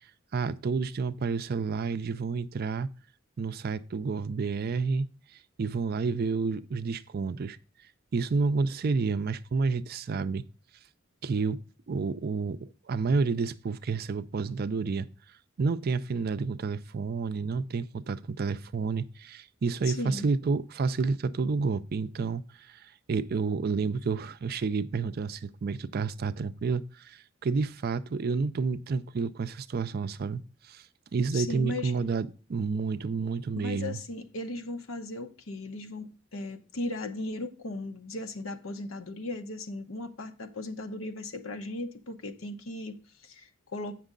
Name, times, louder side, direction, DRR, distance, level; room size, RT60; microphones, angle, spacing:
voice 1, 0.3-2.9 3.4-5.1 5.6-7.6 8.1-10.4 11.2-11.6 11.9-15.1 15.6-22.4 22.7-30.4 30.7-30.8 31.1-34.0, right 4 dB, 50° right, 0.4 m, -30 dB
voice 2, 19.9-20.3 31.3-31.9 33.6-43.9, left 2 dB, 85° left, 0.9 m, -37 dB
8.2 x 6.0 x 3.8 m
head